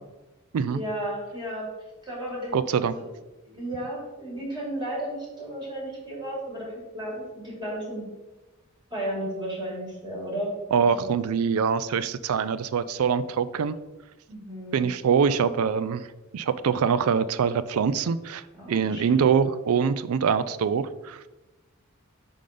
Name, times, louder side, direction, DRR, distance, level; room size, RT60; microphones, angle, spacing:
voice 1, 0.7-1.7 2.0-2.5 2.9-3.0 3.4-8.1 8.9-11.1 14.3-14.8 18.5-19.3, right 1 dB, 20° right, -4 dB, 1.9 m, -34 dB
voice 2, 2.5-2.9 10.7-13.8 14.7-16.1 16.3-21.2, right 6 dB, 75° right, 15 dB, 0.4 m, -24 dB
5.4 x 3.9 x 4.9 m, 1.1 s
head